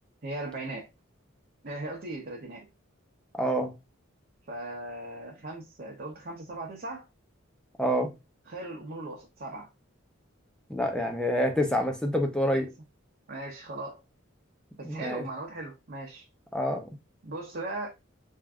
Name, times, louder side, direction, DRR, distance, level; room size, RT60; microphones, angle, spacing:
voice 1, 0.2-0.9 1.6-2.7 4.5-7.1 8.5-9.7 12.5-12.6 13.3-14.0 14.8-16.3 17.2-17.9, right 2 dB, 50° right, 0.7 m, -38 dB
voice 2, 3.4-3.7 7.8-8.1 10.7-12.7 14.8-15.2 16.5-16.8, equal, 5° left, 0.6 m, -27 dB
3.5 x 2.5 x 3.5 m
head